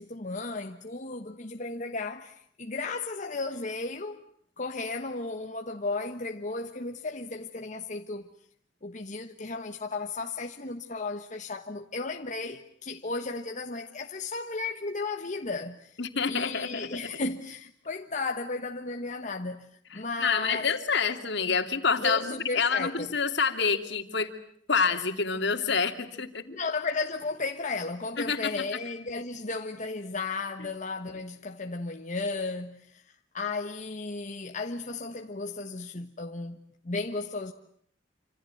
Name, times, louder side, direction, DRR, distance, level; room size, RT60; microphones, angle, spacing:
voice 1, 0.0-4.2 4.6-8.3 8.8-16.0 16.3-20.7 22.0-23.1 26.5-33.0 33.3-36.6 36.8-37.5, left 3 dB, 40° left, 1.3 m, -34 dB
voice 2, 16.0-17.1 19.9-24.3 24.7-26.4 28.2-28.5, left 5 dB, 65° left, 2.7 m, -27 dB
27.5 x 26.5 x 7.8 m
head